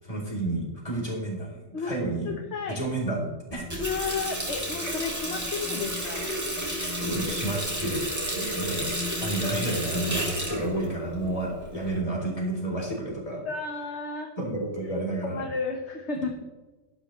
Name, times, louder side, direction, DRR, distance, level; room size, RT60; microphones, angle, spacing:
voice 1, 0.0-2.3 2.7-3.6 7.0-8.0 8.3-8.9 9.2-13.4 14.4-15.4, right 2 dB, 25° left, -3 dB, 4.1 m, -30 dB
voice 2, 1.7-2.8 3.8-6.3 8.4-8.7 9.1-9.2 13.4-14.3 15.2-16.5, left 4 dB, 55° left, 3 dB, 1.4 m, -33 dB
Water tap faucet, 3.5-12.0, equal, 10° right, 3.0 m, -32 dB
13.0 x 11.5 x 3.2 m, 1.2 s
omnidirectional pair, 1.5 m